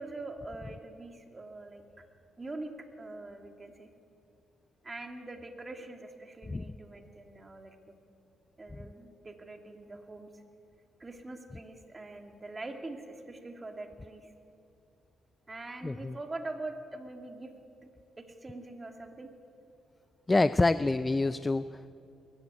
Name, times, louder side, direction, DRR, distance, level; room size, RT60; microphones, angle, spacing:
voice 1, 0.0-1.8 2.4-2.7 3.0-3.9 4.8-7.8 8.6-10.4 11.0-14.3 15.5-17.5 18.2-19.3, right 2 dB, 25° right, 4 dB, 2.5 m, -43 dB
voice 2, 15.8-16.2 20.3-21.9, left 2 dB, 20° left, 13 dB, 0.5 m, -27 dB
21.0 x 14.5 x 9.7 m, 2.6 s
cardioid pair, 90°, 0 cm